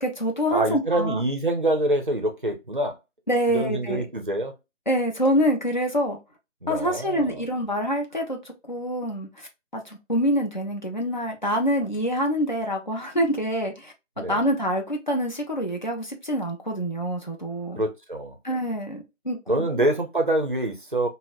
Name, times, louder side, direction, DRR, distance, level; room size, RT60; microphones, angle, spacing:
voice 1, 0.0-1.2 3.3-4.0 4.9-6.2 6.7-8.4 8.7-17.8 18.4-19.9, equal, 40° left, 0.5 m, -26 dB
voice 2, 0.5-3.0 3.5-4.5 6.6-7.4 14.2-14.4 17.7-18.4 19.5-21.1, right 1 dB, 40° right, 0.5 m, -25 dB
2.7 x 2.0 x 3.6 m
figure-of-eight pair, 175°, 38 cm